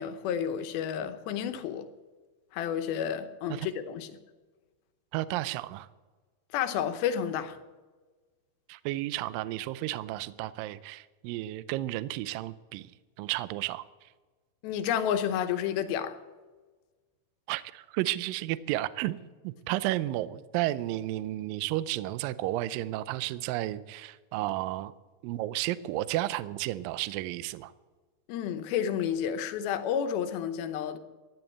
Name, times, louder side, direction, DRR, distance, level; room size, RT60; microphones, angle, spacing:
voice 1, 0.0-1.9 2.5-4.2 6.5-7.6 14.6-16.2 28.3-31.0, left 9 dB, 75° left, 2.6 m, -31 dB
voice 2, 5.1-5.9 8.7-12.9 13.2-13.8 17.5-19.2 19.4-24.9 25.2-27.7, right 16 dB, 85° right, 2.0 m, -32 dB
14.5 x 11.0 x 8.4 m
omnidirectional pair, 4.7 m